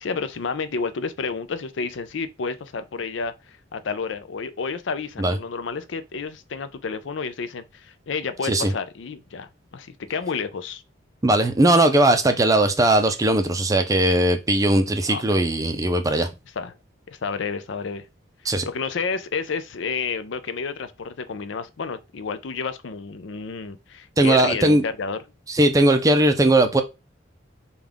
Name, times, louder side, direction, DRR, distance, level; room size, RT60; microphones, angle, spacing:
voice 1, 0.0-10.8 15.1-15.4 16.6-16.7 17.1-18.1 18.4-25.2, left 5 dB, 65° left, 0.5 m, -30 dB
voice 2, 11.2-16.3 18.5-18.7 24.2-24.8 25.5-26.8, right 1 dB, 15° right, 0.5 m, -19 dB
5.3 x 2.4 x 3.4 m
head